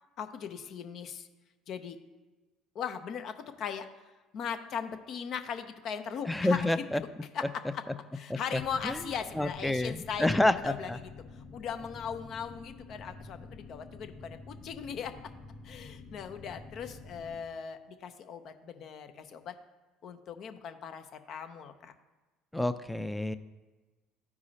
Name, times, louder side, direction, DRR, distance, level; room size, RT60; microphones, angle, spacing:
voice 1, 0.2-1.3 1.7-2.0 2.7-4.0 4.3-6.8 7.3-7.4 7.7-7.8 8.1-10.9 11.3-15.1 15.6-19.5 20.0-21.9, left 7 dB, 55° left, 9 dB, 0.7 m, -39 dB
voice 2, 6.3-7.0 8.3-9.0 9.4-11.0 22.5-23.4, left 1 dB, 5° left, 12 dB, 0.5 m, -29 dB
sound 1, 8.5-17.4, left 3 dB, 30° left, 2.0 m, -49 dB
13.5 x 4.8 x 2.8 m, 1.2 s
hypercardioid pair, 65°, 0 cm